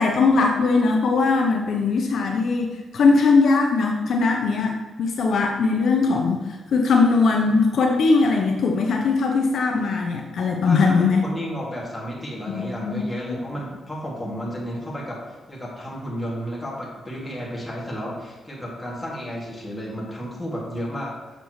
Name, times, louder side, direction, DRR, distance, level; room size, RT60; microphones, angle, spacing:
voice 1, 0.0-11.3 12.5-13.4, left 4 dB, 65° left, 1 dB, 0.8 m, -20 dB
voice 2, 10.6-21.2, equal, 10° left, -5 dB, 2.2 m, -32 dB
6.7 x 6.7 x 3.2 m, 1.2 s
cardioid pair, 110°, 0 cm